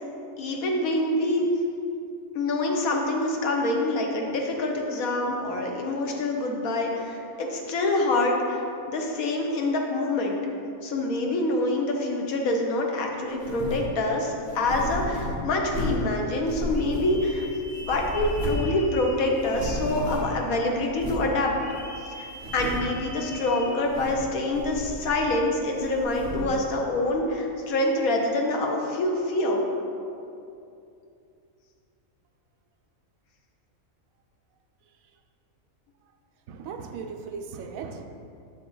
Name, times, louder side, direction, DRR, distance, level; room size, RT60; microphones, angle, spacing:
voice 1, 0.4-1.4 2.3-8.6 8.9-10.4 10.8-17.5 17.8-21.5 22.1-29.6, left 2 dB, 80° left, 1 dB, 1.4 m, -26 dB
sound 1, 13.4-13.9 14.5-16.1 16.4-17.4 17.7-18.8 19.0-19.1 19.4-20.4 21.0-21.3 21.8-21.9 22.3-23.0 23.7-24.3 24.5-25.4 25.8-26.6, equal, 50° right, 1.4 m, -33 dB
sound 2, 16.7-20.6 21.5-23.7, left 1 dB, 35° left, 1.2 m, -43 dB
voice 2, 36.5-38.1, right 5 dB, 75° right, 5 dB, 1.0 m, -37 dB
7.4 x 6.1 x 3.9 m, 2.6 s
omnidirectional pair, 1.5 m